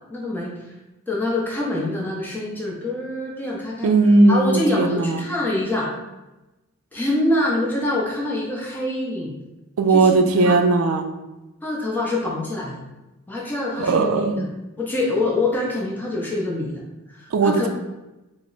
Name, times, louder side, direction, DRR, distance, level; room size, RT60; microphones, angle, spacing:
voice 1, 0.1-0.5 1.1-3.9 4.3-5.9 6.9-9.3 9.9-10.6 11.6-12.8 13.3-14.5 14.8-17.7, left 1 dB, 10° left, -4 dB, 0.6 m, -25 dB
voice 2, 3.8-5.3 9.8-11.1 13.8-14.5 17.3-17.7, right 3 dB, 80° right, 6 dB, 0.4 m, -17 dB
3.3 x 2.0 x 3.8 m, 1.0 s
head